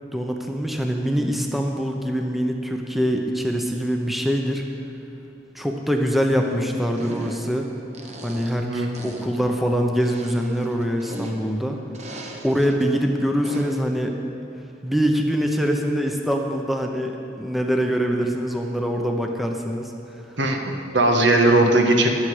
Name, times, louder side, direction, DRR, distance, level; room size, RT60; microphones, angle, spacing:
voice 1, 0.1-4.6 5.5-7.7 8.2-11.8 12.4-14.1 14.8-17.1 17.4-19.9, equal, ahead, 2 dB, 0.8 m, -24 dB
sound 1, 6.9-7.6 7.9-8.7 8.9-9.4 9.9-11.6 11.9-12.8 13.4-13.9, right 1 dB, 40° right, 1.2 m, -38 dB
voice 2, 20.4-22.1, right 2 dB, 80° right, 3 dB, 1.5 m, -18 dB
21.5 x 7.5 x 5.0 m, 3.0 s
head